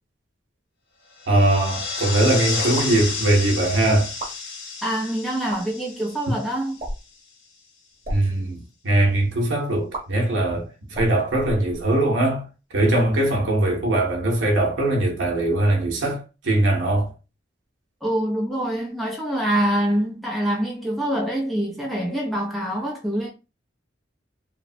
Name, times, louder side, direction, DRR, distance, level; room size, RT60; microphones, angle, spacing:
sound 1, 1.2-7.0, left 4 dB, 60° left, 0.8 m, -31 dB
voice 1, 1.3-4.1 8.1-12.5 12.7-17.1, right 1 dB, 75° right, 0.7 m, -21 dB
sound 2, 2.7-3.0 4.0-4.3 5.4-5.6 6.8-7.1 7.9-8.2 9.9-10.0 10.9-12.1, right 1 dB, 35° right, 1.0 m, -33 dB
voice 2, 4.8-6.8 18.0-23.3, right 1 dB, ahead, 0.5 m, -25 dB
3.0 x 2.1 x 2.6 m
head